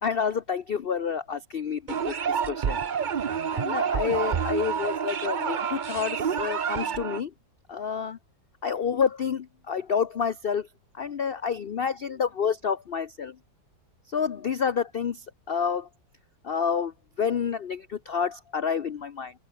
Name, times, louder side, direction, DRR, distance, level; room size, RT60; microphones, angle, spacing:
voice 1, 0.0-2.8 3.5-7.3 7.7-8.2 8.6-10.7 10.9-13.3 14.1-15.9 16.4-16.9 17.2-19.3, left 6 dB, 70° left, 0.5 m, -29 dB
sound 1, 1.9-7.2, right 7 dB, 55° right, 0.5 m, -28 dB
open air
omnidirectional pair, 1.9 m